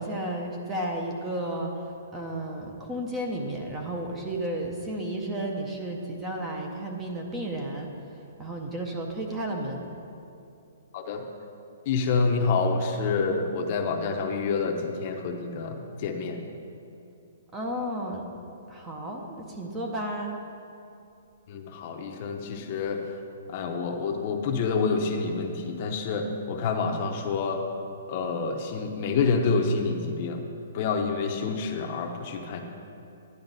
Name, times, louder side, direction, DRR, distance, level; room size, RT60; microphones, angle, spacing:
voice 1, 0.0-7.9 8.4-9.9 17.5-18.3 18.7-20.4, right 1 dB, 10° right, 1 dB, 0.6 m, -33 dB
voice 2, 11.9-16.4 21.5-23.0 23.5-27.6 28.1-30.4 30.7-32.6, left 4 dB, 30° left, 4 dB, 0.7 m, -27 dB
10.5 x 9.6 x 4.0 m, 2.7 s
hypercardioid pair, 175°, 0 cm